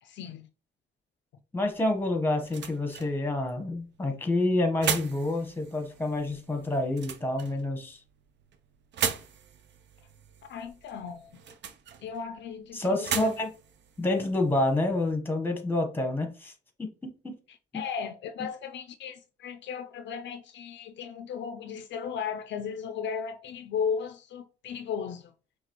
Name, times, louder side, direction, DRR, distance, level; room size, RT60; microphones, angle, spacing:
voice 1, 0.0-0.5 10.4-11.4 12.0-13.3 17.5-25.3, left 7 dB, 65° left, 0.4 m, -36 dB
voice 2, 1.5-8.0 12.7-13.5 14.0-16.5 17.0-17.3, left 2 dB, 10° left, 1.1 m, -28 dB
sound 1, 1.6-15.1, right 7 dB, 65° right, 0.6 m, -39 dB
5.8 x 2.4 x 3.0 m
cardioid pair, 90°, 20 cm